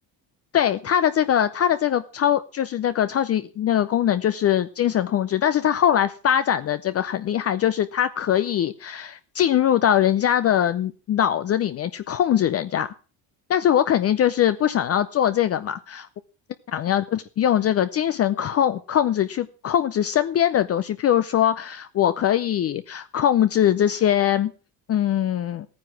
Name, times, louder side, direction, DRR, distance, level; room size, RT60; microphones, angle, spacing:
voice 1, 0.5-12.9 13.5-16.1 16.7-24.5 24.9-25.7, left 10 dB, 35° left, 13 dB, 0.6 m, -22 dB
15.0 x 9.5 x 5.9 m, 0.37 s
cardioid pair, 140°, 41 cm